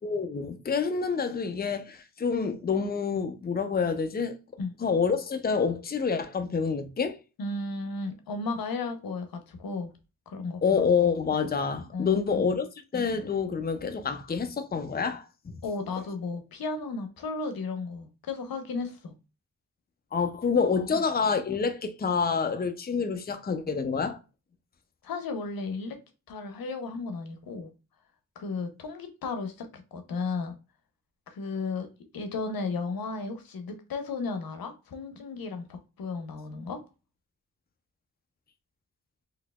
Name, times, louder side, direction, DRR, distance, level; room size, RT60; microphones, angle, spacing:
voice 1, 0.0-4.4 4.8-7.2 10.6-12.7 12.9-15.5 20.1-24.2, left 5 dB, 25° left, 0.6 m, -27 dB
voice 2, 7.4-9.9 10.3-10.8 11.9-12.5 15.6-19.1 20.9-21.0 25.0-26.0 26.3-27.7 28.4-30.5 31.3-31.9 32.1-36.8, left 3 dB, 80° left, 0.7 m, -34 dB
3.9 x 2.9 x 2.2 m
cardioid pair, 45°, 35 cm